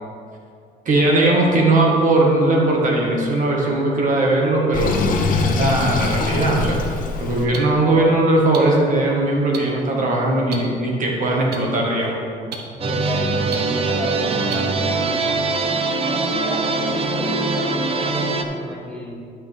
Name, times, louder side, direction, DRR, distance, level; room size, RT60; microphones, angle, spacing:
voice 1, 0.9-5.1 5.3-6.8 7.2-12.2, right 2 dB, 50° right, -2 dB, 1.9 m, -19 dB
Sink (filling or washing), 4.7-7.5, left 4 dB, 55° left, 1.0 m, -22 dB
sound 1, 6.5-6.6 7.5-7.6 8.5-8.6 9.5-9.6 10.5-10.6 11.5-11.6 12.5-12.6 13.5-13.6 14.5-14.6, right 7 dB, 70° right, 1.0 m, -29 dB
voice 2, 12.8-15.0 16.0-19.2, left 1 dB, 5° left, -3 dB, 1.4 m, -31 dB
sound 2, 12.8-18.4, right 3 dB, 35° right, 0.7 m, -22 dB
11.0 x 6.1 x 3.6 m, 2.3 s
cardioid pair, 110°, 17 cm